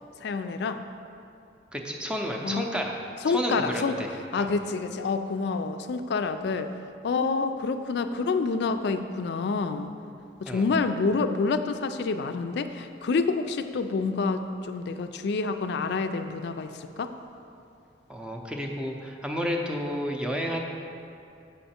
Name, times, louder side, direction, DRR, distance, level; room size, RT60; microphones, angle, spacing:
voice 1, 0.2-0.8 2.4-2.7 3.2-4.0 4.3-6.7 7.0-9.9 10.4-17.1, left 4 dB, 65° left, 9 dB, 0.4 m, -28 dB
voice 2, 1.7-2.9 3.3-4.1 4.4-4.5 10.5-10.6 18.1-20.6, equal, 5° right, 1 dB, 0.6 m, -31 dB
7.6 x 5.6 x 4.3 m, 2.6 s
head